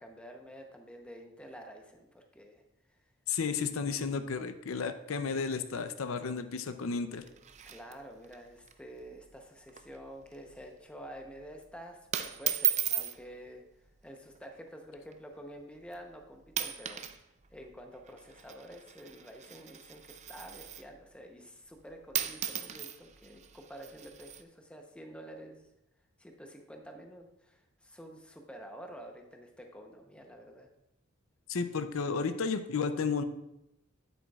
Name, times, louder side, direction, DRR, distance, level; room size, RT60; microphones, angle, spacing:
voice 1, 0.0-2.6 7.6-13.6 14.0-17.1 17.5-25.7 26.2-30.7, equal, 5° left, 3 dB, 0.8 m, -49 dB
voice 2, 3.3-7.2 31.5-33.2, left 5 dB, 85° left, 10 dB, 0.5 m, -33 dB
sound 1, 7.1-8.4 8.7-8.8 9.1-9.3 9.7-10.0 10.4-10.6 11.4-11.6 12.1-13.2 14.2-14.5 15.1-15.2 15.9-16.2 16.5-17.2 17.4-21.0 21.8-21.9 22.1-24.4, right 11 dB, 35° right, 0.4 m, -36 dB
9.1 x 8.2 x 2.4 m, 0.86 s
head